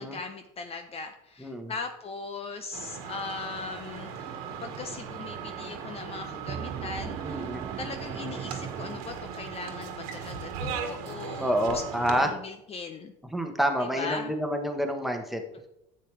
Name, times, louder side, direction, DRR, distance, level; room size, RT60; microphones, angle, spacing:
voice 1, 0.0-4.3 4.6-7.5 7.8-11.8 12.1-13.1 13.9-14.3 15.5-15.7, left 4 dB, 35° left, 7 dB, 0.8 m, -39 dB
voice 2, 1.4-1.7 7.2-7.6 11.4-12.3 13.3-15.4, equal, ahead, 4 dB, 1.3 m, -28 dB
sound 1, 2.7-12.3, right 6 dB, 85° right, 1.5 m, -38 dB
sound 2, 4.1-9.7, right 8 dB, 30° right, 0.6 m, -40 dB
10.5 x 7.8 x 3.4 m, 0.83 s
supercardioid pair, 100°, 18 cm